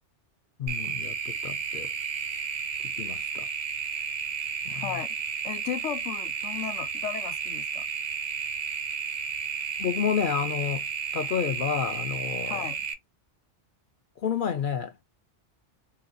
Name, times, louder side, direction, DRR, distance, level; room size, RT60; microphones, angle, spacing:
voice 1, 0.6-1.9 3.0-3.5 4.6-4.9 9.8-10.9 11.1-12.7 14.2-15.0, left 7 dB, 55° left, 0.6 m, -30 dB
sound 1, 0.7-12.9, right 6 dB, 45° right, 0.6 m, -32 dB
voice 2, 4.7-5.2 5.4-7.9 12.4-12.8, left 10 dB, 85° left, 1.0 m, -35 dB
3.9 x 2.3 x 2.4 m
omnidirectional pair, 1.2 m